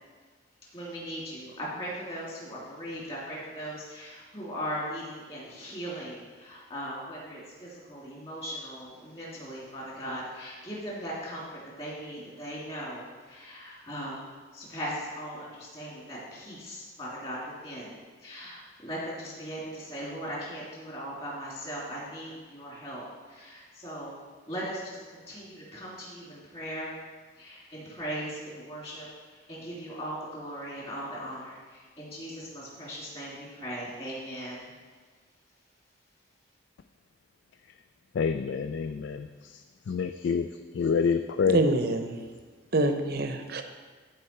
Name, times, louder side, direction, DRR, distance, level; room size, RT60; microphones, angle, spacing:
voice 1, 0.7-24.2 24.5-26.9 27.4-34.7, equal, 30° left, -5 dB, 2.6 m, -39 dB
voice 2, 38.1-40.5 40.7-41.6, left 6 dB, 60° left, 8 dB, 0.3 m, -27 dB
voice 3, 41.5-42.2 42.7-43.6, right 2 dB, 50° right, 6 dB, 0.7 m, -25 dB
13.5 x 4.7 x 4.4 m, 1.4 s
head